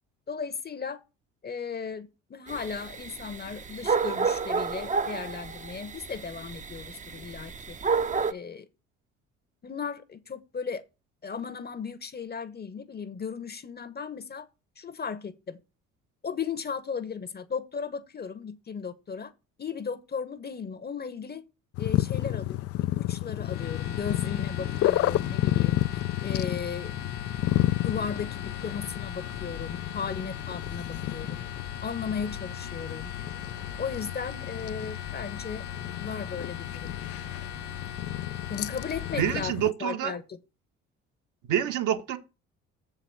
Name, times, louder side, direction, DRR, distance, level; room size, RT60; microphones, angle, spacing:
voice 1, 0.3-1.0 1.4-7.8 8.3-8.7 9.6-10.8 11.2-14.5 14.8-15.6 16.2-19.3 19.6-21.4 21.8-22.6 23.0-25.8 26.2-26.9 27.8-31.4 31.8-33.1 33.8-35.6 36.0-36.9 38.5-39.5 39.8-40.4, left 6 dB, 30° left, 1.0 m, -36 dB
sound 1, 2.5-8.3, right 5 dB, 20° right, 0.7 m, -30 dB
sound 2, 21.7-39.7, left 15 dB, 45° left, 0.4 m, -31 dB
sound 3, 23.4-39.4, left 7 dB, 85° left, 1.2 m, -40 dB
voice 2, 39.2-40.1 41.4-42.2, right 10 dB, 60° right, 1.2 m, -27 dB
7.4 x 4.7 x 7.0 m
hypercardioid pair, 55°, 35 cm